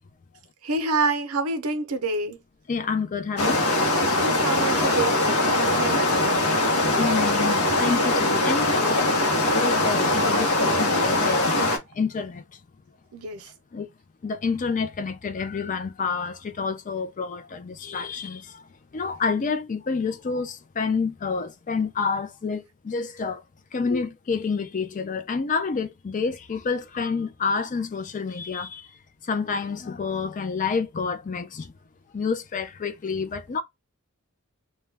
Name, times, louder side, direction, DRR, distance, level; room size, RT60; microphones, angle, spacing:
voice 1, 0.6-2.4 4.2-6.5 13.1-13.5, right 3 dB, 80° right, 0.6 m, -28 dB
voice 2, 2.7-3.7 5.7-5.8 6.9-9.1 9.5-11.6 11.9-12.4 13.7-13.9 14.2-18.6 18.9-23.4 23.7-28.9 29.3-31.7 32.1-33.6, left 5 dB, 35° left, 0.4 m, -28 dB
sound 1, 3.4-11.8, left 2 dB, 75° left, 0.8 m, -22 dB
2.2 x 2.1 x 3.2 m
head